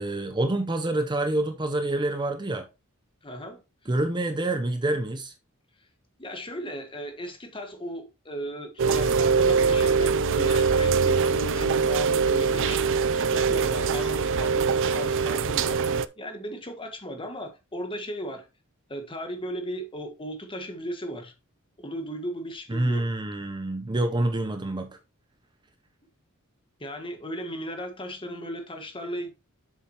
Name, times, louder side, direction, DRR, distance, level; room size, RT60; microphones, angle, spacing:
voice 1, 0.0-2.7 3.9-5.3 22.7-24.9, right 1 dB, 20° right, 0.7 m, -27 dB
voice 2, 3.2-3.6 6.2-18.5 18.9-21.3 21.8-23.1 26.8-29.3, equal, 25° left, 1.6 m, -36 dB
Rain, 8.8-16.0, right 5 dB, 60° right, 0.5 m, -23 dB
7.3 x 7.2 x 2.9 m
head